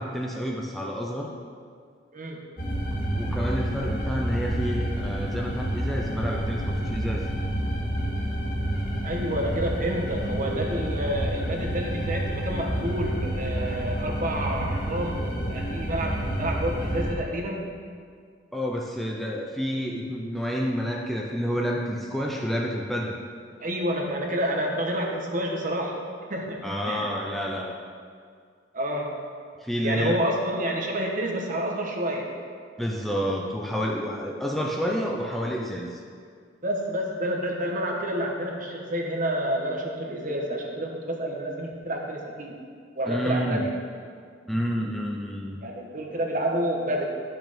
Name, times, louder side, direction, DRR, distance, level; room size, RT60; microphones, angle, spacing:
voice 1, 0.0-1.3 3.2-7.3 18.5-23.2 26.6-27.8 29.6-30.3 32.8-36.0 43.1-43.7 44.5-45.6, equal, ahead, -2 dB, 0.6 m, -29 dB
voice 2, 2.1-2.4 9.0-17.7 23.6-27.1 28.7-29.1 29.8-32.3 36.6-42.7 43.0-43.6 45.6-47.0, right 1 dB, 45° right, 1 dB, 1.3 m, -29 dB
sound 1, 2.6-17.1, right 1 dB, 50° left, 2.0 m, -29 dB
11.0 x 6.1 x 5.2 m, 2.1 s
head